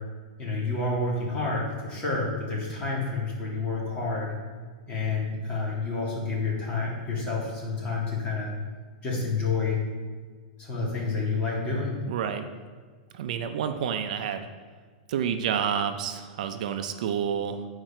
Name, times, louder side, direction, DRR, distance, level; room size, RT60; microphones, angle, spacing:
voice 1, 0.4-4.3 4.9-8.5 9.0-9.8 10.6-11.9, left 3 dB, 25° left, -5 dB, 2.6 m, -29 dB
voice 2, 12.1-12.5 13.1-14.5 15.1-17.7, right 8 dB, 60° right, 7 dB, 0.6 m, -29 dB
9.6 x 4.9 x 4.4 m, 1.5 s
supercardioid pair, 155°, 5 cm